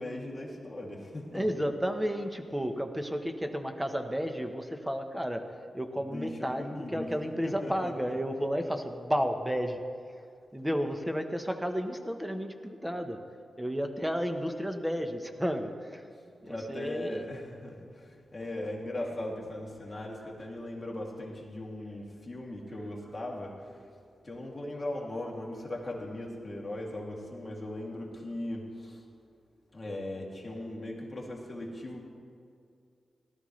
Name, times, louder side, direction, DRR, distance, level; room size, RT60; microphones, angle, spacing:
voice 1, 0.0-1.7 6.1-7.1 7.4-7.9 16.4-23.9 24.2-29.0 29.7-32.0, left 1 dB, 25° left, -3 dB, 2.6 m, -39 dB
voice 2, 1.3-9.8 10.5-13.2 13.6-16.1 16.4-17.3, equal, 5° right, 6 dB, 1.0 m, -32 dB
18.5 x 12.5 x 3.2 m, 2.3 s
wide cardioid pair, 90°, 0 cm